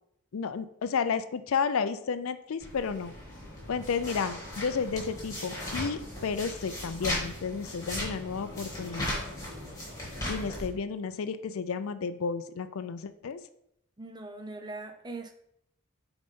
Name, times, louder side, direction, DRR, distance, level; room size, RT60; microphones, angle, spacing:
voice 1, 0.3-3.1 3.7-9.1 10.3-13.4, left 5 dB, 65° left, 12 dB, 0.4 m, -32 dB
sound 1, 2.6-10.7, left 1 dB, 15° left, 2.3 m, -37 dB
voice 2, 14.0-15.3, right 2 dB, 20° right, 6 dB, 0.6 m, -41 dB
8.5 x 4.0 x 3.6 m, 0.76 s
head